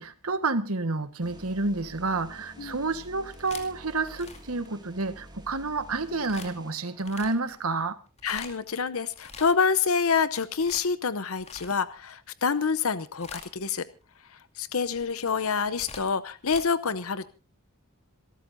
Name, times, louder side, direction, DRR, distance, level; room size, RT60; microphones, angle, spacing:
voice 1, 0.0-8.0, right 3 dB, 75° right, 1.5 m, -29 dB
sound 1, 1.2-7.7, equal, 20° right, 2.5 m, -49 dB
sound 2, 3.1-5.3 6.2-6.5 7.0-7.6 8.1-8.7 9.1-9.8 10.1-12.1 12.6-12.9 13.1-13.7 14.6-16.6, left 4 dB, 30° left, 2.4 m, -45 dB
voice 2, 8.2-13.8 14.3-17.3, left 5 dB, 70° left, 0.8 m, -27 dB
27.5 x 13.0 x 2.7 m
head